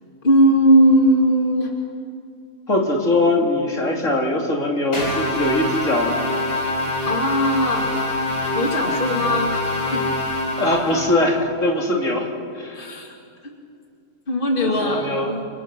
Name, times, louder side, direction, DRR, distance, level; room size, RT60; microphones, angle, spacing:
voice 1, 0.2-1.7 7.1-7.9 8.5-10.1 12.7-13.1 13.4-13.5 14.3-15.4, equal, 35° left, 0 dB, 2.8 m, -19 dB
voice 2, 2.7-6.2 10.6-12.3 12.5-13.0 14.6-15.4, left 1 dB, 55° left, -1 dB, 3.3 m, -21 dB
sound 1, 4.9-11.4, left 2 dB, 85° left, 5.1 m, -25 dB
29.5 x 26.0 x 6.1 m, 2.4 s
omnidirectional pair, 1.6 m